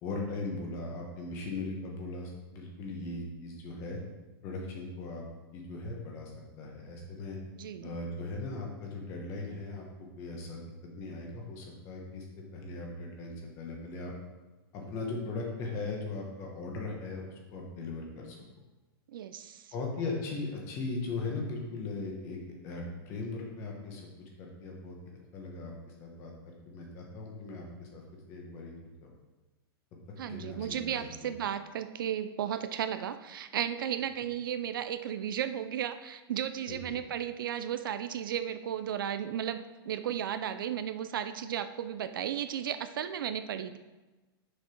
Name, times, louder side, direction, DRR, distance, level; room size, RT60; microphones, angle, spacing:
voice 1, 0.0-4.0 4.4-5.2 5.5-7.4 7.8-9.9 10.2-10.6 10.9-14.1 14.7-18.4 19.7-24.0 24.4-26.3 26.7-28.7 29.0-29.1 30.2-31.4 36.7-37.0, left 3 dB, 20° left, 0 dB, 1.1 m, -39 dB
voice 2, 7.6-7.9 19.1-19.7 30.2-43.8, right 9 dB, 60° right, 11 dB, 0.4 m, -34 dB
6.4 x 5.8 x 4.4 m, 1.2 s
supercardioid pair, 180°, 13 cm